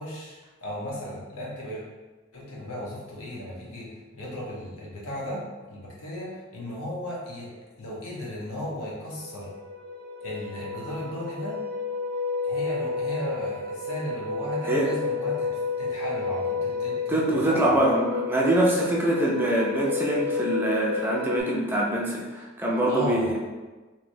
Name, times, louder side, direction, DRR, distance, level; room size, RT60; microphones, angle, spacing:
voice 1, 0.0-1.8 2.3-3.9 4.1-5.4 5.7-7.5 7.8-9.5 10.2-11.6 12.4-17.8 22.9-23.3, equal, 90° left, -5 dB, 0.9 m, -35 dB
sound 1, 8.5-8.6 8.9-21.4, left 4 dB, 35° left, 1.2 m, -31 dB
voice 2, 17.1-23.4, right 1 dB, 10° right, -4 dB, 0.4 m, -24 dB
3.1 x 2.8 x 2.6 m, 1.2 s
head